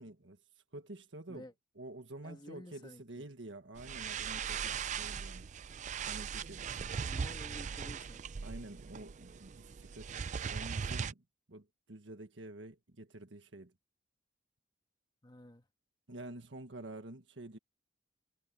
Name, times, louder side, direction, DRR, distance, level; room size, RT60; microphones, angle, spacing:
voice 1, 0.0-1.5 1.8-5.5 6.0-6.7 8.4-13.7 16.1-17.6, right 2 dB, 90° right, 1.5 m, -49 dB
voice 2, 2.2-3.2 7.1-8.2 15.2-15.7, left 1 dB, 25° left, 1.7 m, -51 dB
sound 1, 3.7-11.1, right 6 dB, 40° right, 0.4 m, -39 dB
head